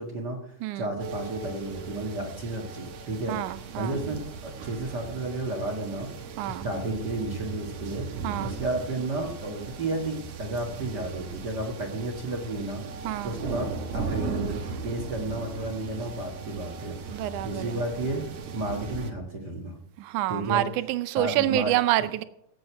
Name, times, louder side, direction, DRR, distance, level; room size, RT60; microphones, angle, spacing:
voice 1, 0.0-6.1 6.5-12.8 13.2-18.2 18.5-19.8 20.3-20.6 21.1-21.7, right 2 dB, 40° right, 1.6 m, -32 dB
voice 2, 0.6-0.9 3.3-4.0 6.4-6.7 8.2-8.5 13.0-13.4 17.1-17.8 20.0-22.2, right 14 dB, 75° right, 1.9 m, -27 dB
sound 1, 1.0-19.1, right 5 dB, 60° right, 2.1 m, -37 dB
16.5 x 8.0 x 4.6 m
omnidirectional pair, 4.1 m